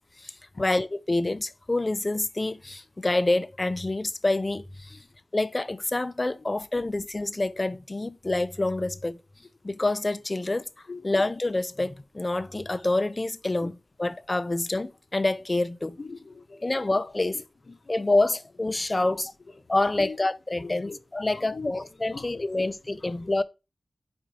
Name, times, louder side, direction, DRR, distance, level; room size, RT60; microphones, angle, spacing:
voice 1, 0.6-5.0 5.3-9.2 9.6-10.7 11.0-16.0 16.6-17.4 17.9-19.3 19.7-23.4, left 2 dB, 30° left, 0.5 m, -27 dB
voice 2, 16.0-16.8 17.9-18.0 19.0-19.1 20.0-20.1 20.6-21.0 21.3-21.7 22.1-22.5 23.0-23.1, left 3 dB, 55° left, 1.0 m, -40 dB
5.1 x 4.3 x 4.8 m
wide cardioid pair, 85°, 0 cm